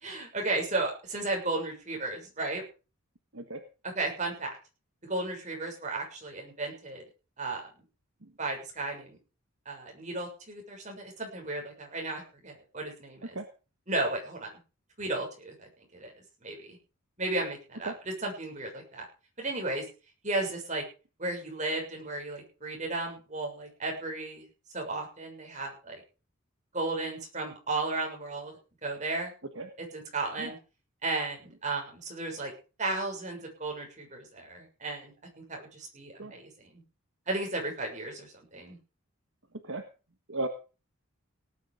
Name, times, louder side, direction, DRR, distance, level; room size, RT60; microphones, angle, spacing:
voice 1, 0.0-2.6 3.9-4.5 5.1-7.0 7.4-7.6 8.4-9.2 9.6-13.4 13.9-14.5 15.0-16.1 16.4-16.8 17.2-17.9 18.2-19.0 19.4-19.8 20.2-20.8 21.2-24.4 24.7-26.0 26.7-28.5 28.8-29.3 29.9-30.6 31.0-32.5 32.8-36.8 37.3-38.8, right 2 dB, 35° right, 0 dB, 6.6 m, -34 dB
voice 2, 3.3-3.6 8.2-8.3 13.2-13.5 17.9-18.0 29.5-29.7 30.4-30.5 36.2-36.3 39.5-39.8 40.3-40.5, right 2 dB, 60° right, 6 dB, 1.5 m, -36 dB
18.5 x 9.7 x 5.1 m, 0.34 s
head